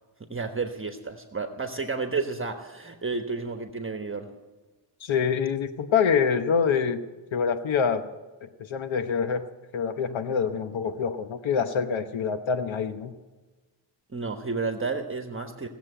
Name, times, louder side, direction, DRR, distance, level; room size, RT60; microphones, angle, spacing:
voice 1, 0.3-4.3 14.1-15.7, right 4 dB, 25° right, 5 dB, 1.2 m, -31 dB
voice 2, 5.0-7.0 7.3-8.1 8.4-9.5 9.7-13.1, left 6 dB, 75° left, 9 dB, 1.0 m, -26 dB
18.0 x 7.4 x 9.9 m, 1.3 s
cardioid pair, 100°, 47 cm